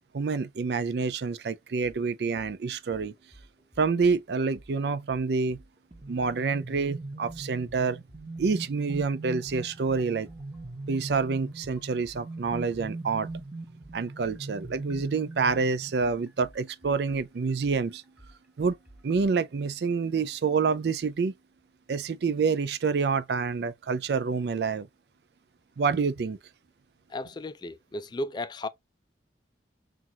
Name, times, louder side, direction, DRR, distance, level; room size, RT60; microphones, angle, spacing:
voice 1, 0.1-3.1 3.8-5.6 6.1-8.0 8.4-10.3 10.9-13.3 13.9-18.0 18.6-18.8 19.0-21.3 21.9-24.9 25.8-26.4, right 5 dB, 65° right, 0.4 m, -27 dB
sound 1, 1.8-2.0 2.4-2.5 2.9-4.2 4.5-4.7 5.1-6.4 6.7-6.9 7.3-8.5 8.9-12.9 13.3-19.3, right 1 dB, 5° right, 1.0 m, -53 dB
sound 2, 5.9-16.4, right 2 dB, 30° right, 0.8 m, -41 dB
voice 2, 27.1-28.7, left 1 dB, 25° left, 0.3 m, -34 dB
5.8 x 2.4 x 2.8 m
head